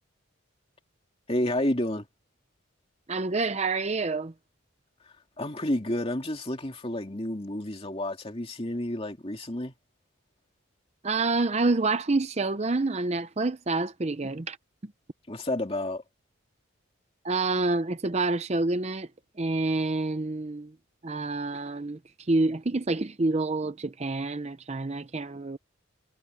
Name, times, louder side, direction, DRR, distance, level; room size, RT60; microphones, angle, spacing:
voice 1, 1.3-2.1 5.4-9.7 15.3-16.0, left 1 dB, 25° left, 2.6 m, -30 dB
voice 2, 3.1-4.3 11.0-14.6 14.8-14.9 17.2-19.1 19.4-20.7 21.0-25.6, right 3 dB, 30° right, 0.6 m, -28 dB
head